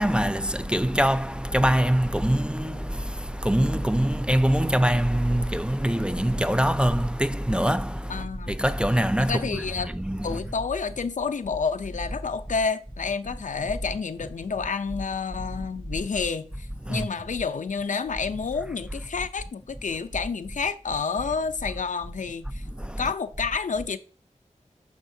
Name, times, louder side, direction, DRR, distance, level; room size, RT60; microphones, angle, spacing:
voice 1, 0.0-10.4 16.9-17.1 22.8-23.0, equal, 10° right, 0.3 m, -24 dB
voice 2, 8.1-8.5 9.2-9.9 10.2-22.6 23.0-24.0, left 5 dB, 75° left, 0.5 m, -29 dB
9.3 x 6.1 x 2.7 m
wide cardioid pair, 80°, 13 cm